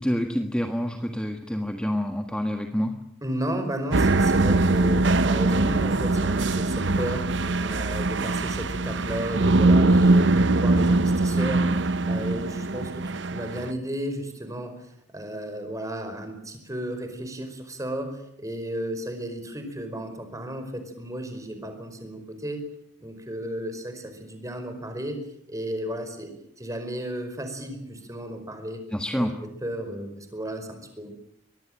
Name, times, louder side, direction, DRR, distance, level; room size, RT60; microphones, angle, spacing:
voice 1, 0.0-2.9 28.9-29.3, equal, 5° left, 5 dB, 1.5 m, -27 dB
voice 2, 3.2-22.6 23.0-26.3 26.6-28.8 29.2-29.3 29.6-31.1, right 1 dB, 15° right, 7 dB, 4.9 m, -34 dB
sound 1, 3.9-13.7, right 2 dB, 65° right, 0.9 m, -22 dB
24.0 x 20.0 x 8.9 m, 0.73 s
head